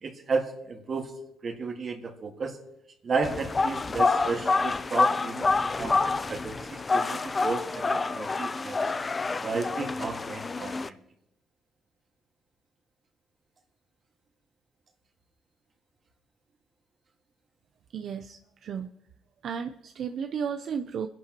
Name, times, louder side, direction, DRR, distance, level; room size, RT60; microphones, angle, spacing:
voice 1, 0.0-1.1 1.4-2.6 3.0-8.9 9.4-11.0, right 4 dB, 45° right, 3 dB, 1.8 m, -33 dB
sound 1, 3.2-10.9, left 3 dB, 30° left, 0.5 m, -27 dB
voice 2, 17.9-18.9 19.4-21.1, right 7 dB, 65° right, 7 dB, 0.6 m, -33 dB
28.0 x 11.0 x 3.0 m, 0.85 s
cardioid pair, 90°, 0 cm